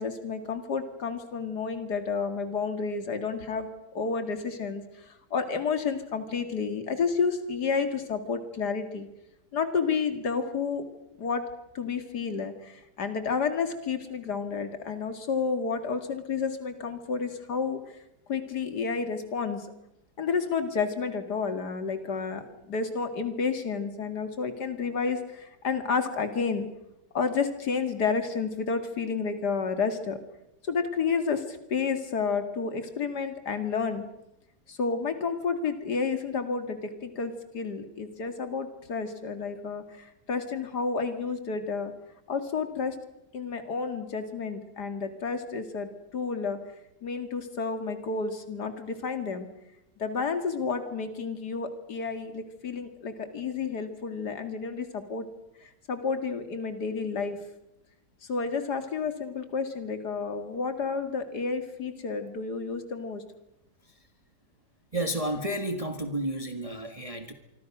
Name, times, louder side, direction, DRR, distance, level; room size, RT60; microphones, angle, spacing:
voice 1, 0.0-3.7 3.9-9.1 9.5-10.8 11.2-11.5 11.7-17.8 18.3-19.7 20.2-26.7 27.1-30.2 30.7-34.0 34.7-41.9 42.3-42.9 43.3-46.6 47.0-49.5 50.0-55.3 55.9-57.4 58.3-63.2, left 5 dB, 70° left, 8 dB, 2.7 m, -30 dB
voice 2, 64.9-67.3, right 1 dB, 20° right, 6 dB, 1.7 m, -31 dB
26.0 x 24.0 x 6.1 m, 0.88 s
omnidirectional pair, 1.8 m